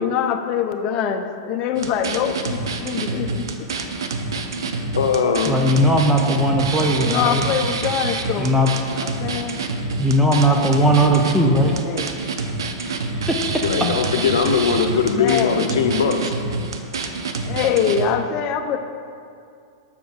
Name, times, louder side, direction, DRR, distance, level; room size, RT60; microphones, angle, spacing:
voice 1, 0.0-3.7 7.0-8.5 8.9-9.6 11.8-12.2 14.7-15.7 17.4-18.8, left 8 dB, 40° left, 6 dB, 0.7 m, -24 dB
sound 1, 1.8-18.1, right 3 dB, 90° right, 0.7 m, -27 dB
voice 2, 4.9-5.6 13.6-16.3, left 6 dB, 85° left, 6 dB, 0.7 m, -20 dB
voice 3, 5.5-7.4 8.4-8.7 10.0-11.7 12.9-13.0 13.3-13.6, equal, 5° right, 1 dB, 0.6 m, -18 dB
6.8 x 5.0 x 6.6 m, 2.4 s
hypercardioid pair, 135°, 2 cm